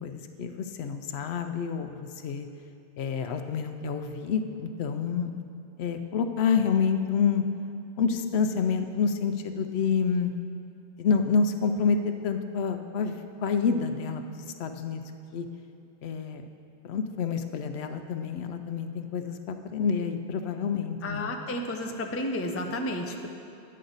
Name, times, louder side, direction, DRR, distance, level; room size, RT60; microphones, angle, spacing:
voice 1, 0.0-2.5 3.0-5.3 5.8-7.4 8.0-10.3 11.0-12.0 12.2-15.0 15.3-15.5 16.0-16.4 16.8-21.3, left 6 dB, 80° left, 7 dB, 0.8 m, -28 dB
voice 2, 21.0-23.3, left 1 dB, 20° left, 3 dB, 0.4 m, -32 dB
10.0 x 7.6 x 4.0 m, 2.8 s
omnidirectional pair, 1.1 m